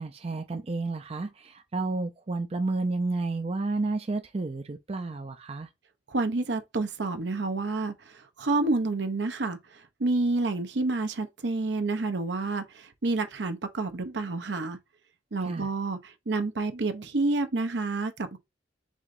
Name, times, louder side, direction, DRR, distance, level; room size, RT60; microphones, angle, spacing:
voice 1, 0.0-5.7 15.4-15.7, right 3 dB, 35° right, 0.5 m, -31 dB
voice 2, 6.1-7.9 8.4-9.6 10.0-14.8 15.3-18.4, right 3 dB, 75° right, 0.8 m, -29 dB
4.9 x 3.7 x 2.6 m
head